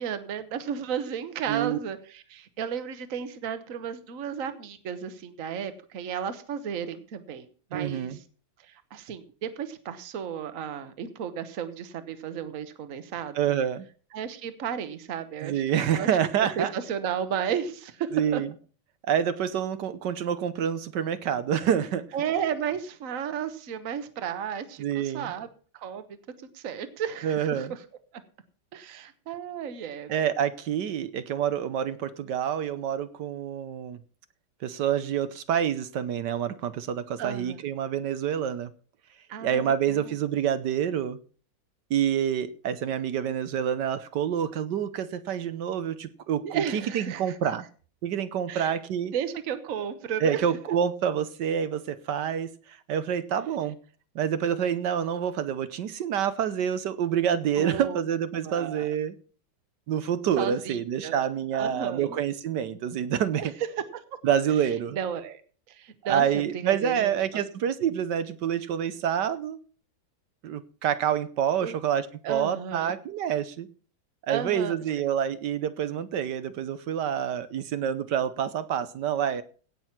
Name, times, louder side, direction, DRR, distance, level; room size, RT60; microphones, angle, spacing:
voice 1, 0.0-8.2 8.6-13.5 14.1-16.1 16.4-18.4 22.1-25.5 25.7-26.0 26.5-27.8 28.7-30.1 37.2-37.6 39.3-40.1 46.4-47.4 48.5-48.7 49.1-50.4 57.6-58.0 58.4-58.9 60.4-61.3 61.5-62.2 63.4-63.5 63.9-64.0 64.9-65.4 65.7-66.2 66.5-67.1 71.6-71.8 72.2-72.9 74.3-74.7, right 8 dB, 50° right, 1.3 m, -33 dB
voice 2, 1.5-1.8 7.7-8.2 13.3-13.9 15.4-16.7 18.1-18.5 19.1-22.0 24.8-25.3 27.2-27.7 30.1-34.0 34.6-38.7 39.4-41.2 41.9-47.7 48.0-49.1 50.2-52.5 52.9-53.8 54.1-59.1 59.9-63.5 64.2-65.0 66.0-69.6 70.4-73.7 74.3-79.4, right 9 dB, 65° right, 1.3 m, -27 dB
17.0 x 6.2 x 5.9 m
omnidirectional pair, 2.1 m